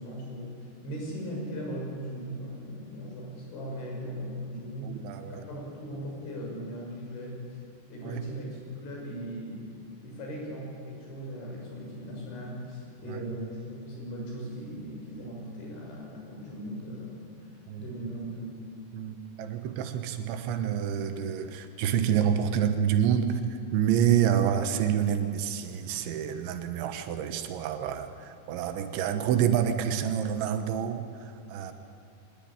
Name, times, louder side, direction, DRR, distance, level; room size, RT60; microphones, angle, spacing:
voice 1, 0.0-5.0 5.3-7.5 7.9-9.6 10.0-18.5, equal, 85° left, -1 dB, 8.9 m, -38 dB
voice 2, 4.8-5.4 8.0-8.2 13.1-13.2 17.7-17.8 18.9-31.7, right 9 dB, 85° right, 8 dB, 3.6 m, -28 dB
23.0 x 20.5 x 8.9 m, 2.4 s
omnidirectional pair, 5.2 m